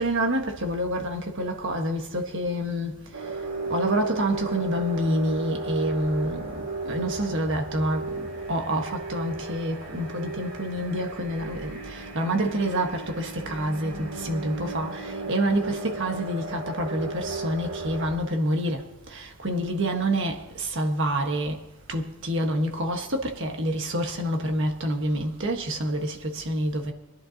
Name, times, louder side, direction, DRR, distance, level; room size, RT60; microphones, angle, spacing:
voice 1, 0.0-3.0 3.7-21.6 21.9-26.9, right 1 dB, 55° right, 1.5 m, -28 dB
sound 1, 3.1-18.2, right 3 dB, 90° right, 2.6 m, -34 dB
24.5 x 10.5 x 2.9 m
head